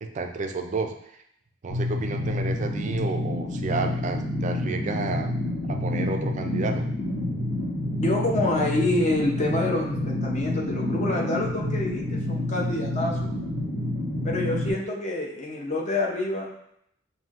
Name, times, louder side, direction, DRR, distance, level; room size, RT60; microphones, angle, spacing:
voice 1, 0.0-0.9 1.6-5.3 5.7-6.9, right 3 dB, 40° right, 5 dB, 0.4 m, -31 dB
sound 1, 1.7-14.7, left 1 dB, 60° left, 1.1 m, -28 dB
voice 2, 8.0-13.3 14.2-16.5, left 2 dB, 35° left, -1 dB, 0.7 m, -27 dB
5.6 x 2.6 x 2.5 m, 0.74 s
head